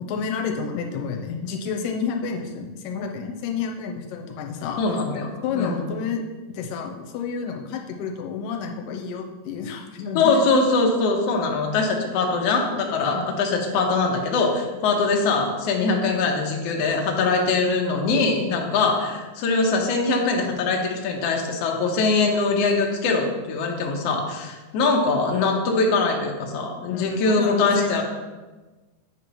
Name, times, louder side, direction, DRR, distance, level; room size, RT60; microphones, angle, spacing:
voice 1, 0.0-4.8 5.4-6.2 6.5-10.3 13.1-13.3 26.9-28.0, left 5 dB, 90° left, 2 dB, 2.3 m, -30 dB
voice 2, 4.8-5.8 10.1-28.0, left 3 dB, 70° left, 1 dB, 1.5 m, -22 dB
8.5 x 2.9 x 5.2 m, 1.2 s
omnidirectional pair, 3.9 m